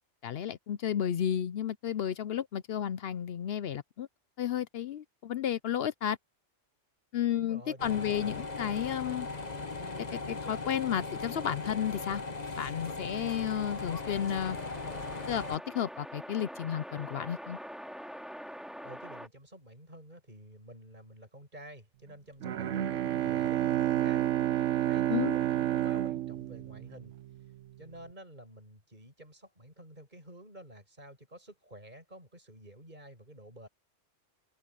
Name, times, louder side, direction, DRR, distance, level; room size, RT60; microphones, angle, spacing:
voice 1, 0.2-4.1 4.4-6.2 7.1-9.3 10.0-12.2 12.6-14.6 15.3-17.6 25.1-25.4, left 9 dB, 60° left, 0.7 m, -32 dB
voice 2, 7.3-8.3 18.8-24.3 24.8-27.1 27.8-33.7, right 1 dB, 35° right, 8.3 m, -50 dB
sound 1, 7.8-15.6, left 3 dB, 35° left, 1.4 m, -38 dB
sound 2, 13.5-19.3, equal, ahead, 2.3 m, -45 dB
Bowed string instrument, 22.4-27.4, right 12 dB, 80° right, 1.0 m, -30 dB
open air
omnidirectional pair, 1.3 m